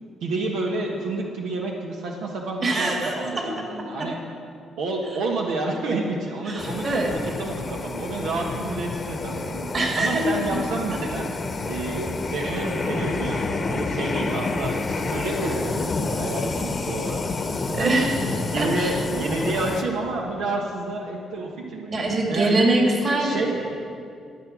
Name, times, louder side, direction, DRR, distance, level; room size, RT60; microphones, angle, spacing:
voice 1, 0.2-4.2 4.8-9.7 9.9-11.3 11.6-17.2 17.7-18.1 18.5-22.0 22.3-22.7 23.2-23.6, right 2 dB, 90° right, 0 dB, 1.2 m, -29 dB
voice 2, 2.6-3.6 4.0-4.1 6.5-7.1 9.7-10.3 17.7-18.3 18.6-19.0 21.9-23.8, right 2 dB, 45° right, 1 dB, 2.4 m, -24 dB
sound 1, 6.6-19.8, left 3 dB, 40° left, 1.0 m, -29 dB
12.5 x 8.8 x 6.2 m, 2.4 s
cardioid pair, 90°, 0 cm